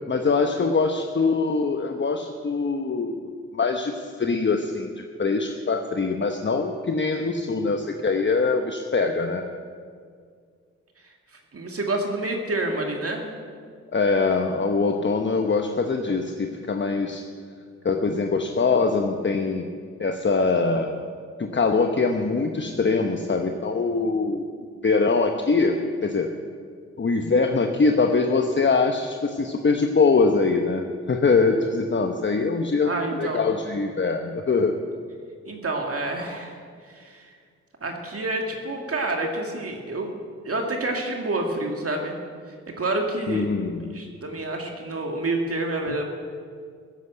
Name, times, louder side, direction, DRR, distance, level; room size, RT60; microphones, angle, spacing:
voice 1, 0.1-4.9 5.2-9.4 13.9-17.2 17.8-19.6 20.0-20.9 21.4-24.5 24.8-26.3 27.0-34.7 43.3-43.9, left 4 dB, 40° left, 4 dB, 1.0 m, -23 dB
voice 2, 11.5-13.3 32.8-33.4 35.4-36.6 36.9-37.3 37.8-40.1 40.4-42.1 42.8-43.5 43.9-46.0, right 2 dB, 50° right, 2 dB, 2.2 m, -28 dB
15.5 x 8.2 x 8.0 m, 2.1 s
supercardioid pair, 50°, 30 cm